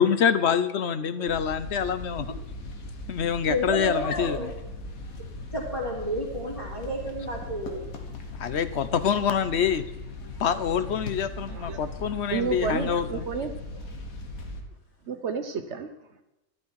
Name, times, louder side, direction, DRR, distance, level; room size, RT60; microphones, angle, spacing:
voice 1, 0.0-2.4 3.1-4.5 8.4-9.8 10.4-13.1, left 7 dB, 60° left, 12 dB, 0.9 m, -25 dB
sound 1, 1.3-14.6, left 2 dB, 75° left, 1.8 m, -39 dB
voice 2, 3.5-4.6 5.5-7.8, equal, 20° left, -8 dB, 3.2 m, -30 dB
voice 3, 11.5-12.0 12.3-13.8 15.0-15.9, right 6 dB, 60° right, 8 dB, 1.0 m, -32 dB
13.0 x 11.5 x 4.7 m, 0.95 s
omnidirectional pair, 1.5 m